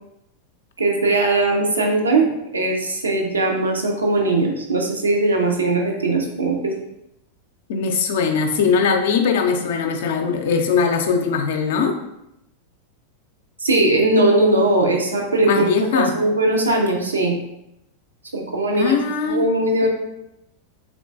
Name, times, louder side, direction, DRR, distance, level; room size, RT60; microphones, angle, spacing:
voice 1, 0.8-6.7 13.6-17.3 18.3-19.0 19.2-19.9, right 2 dB, 75° right, 1 dB, 0.7 m, -19 dB
voice 2, 7.7-11.9 15.4-16.2 18.7-19.5, left 5 dB, 55° left, 4 dB, 0.5 m, -20 dB
3.7 x 3.6 x 2.4 m, 0.84 s
figure-of-eight pair, 90°, 0 cm